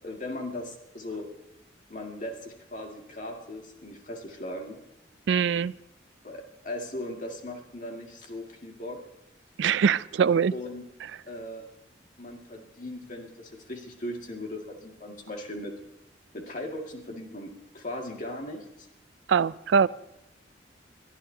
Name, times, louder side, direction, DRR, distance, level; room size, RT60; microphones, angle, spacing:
voice 1, 0.0-1.3 1.9-4.8 6.2-9.0 10.5-10.9 11.3-11.6 12.2-15.8 16.3-18.6, left 1 dB, 45° left, 1 dB, 2.1 m, -38 dB
voice 2, 5.3-5.7 9.6-10.5 19.3-19.9, right 6 dB, 90° right, 19 dB, 0.4 m, -22 dB
22.5 x 12.0 x 2.8 m, 0.90 s
head